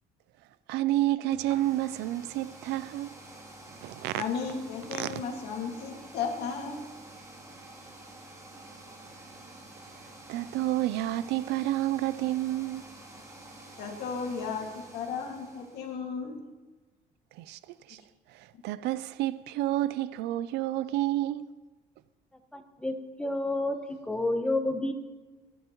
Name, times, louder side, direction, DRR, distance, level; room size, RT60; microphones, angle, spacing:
voice 1, 0.7-3.2 3.8-4.2 5.0-5.2 10.3-12.8 17.3-18.0 18.3-21.5, right 14 dB, 85° right, 0.5 m, -30 dB
sound 1, 1.3-15.9, right 2 dB, 15° right, 3.0 m, -49 dB
voice 2, 4.1-6.8 13.8-16.4, left 5 dB, 75° left, 2.1 m, -34 dB
voice 3, 22.5-23.8 24.0-24.9, left 2 dB, 5° left, 1.3 m, -29 dB
23.0 x 9.1 x 3.1 m
cardioid pair, 110°, 17 cm